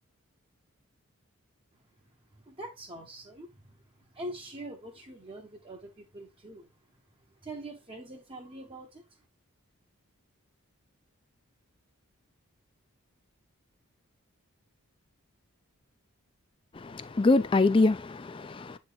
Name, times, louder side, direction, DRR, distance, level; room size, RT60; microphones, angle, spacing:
voice 1, 2.3-6.7 7.4-9.2, right 1 dB, 25° right, 0.7 m, -44 dB
voice 2, 16.7-18.8, left 3 dB, 25° left, 0.3 m, -25 dB
7.7 x 3.1 x 3.8 m
head